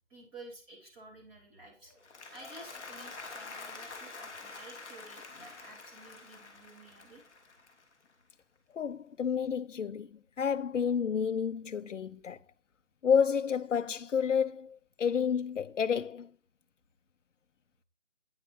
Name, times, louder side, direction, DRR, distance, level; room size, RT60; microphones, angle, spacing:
voice 1, 0.1-1.9 2.3-7.2, right 2 dB, 20° right, 3.5 m, -52 dB
Applause, 1.9-8.2, left 3 dB, 5° left, 1.2 m, -47 dB
voice 2, 8.7-10.1 10.4-12.4 13.0-16.3, left 7 dB, 80° left, 0.6 m, -30 dB
9.5 x 6.1 x 5.5 m
figure-of-eight pair, 170°, 36 cm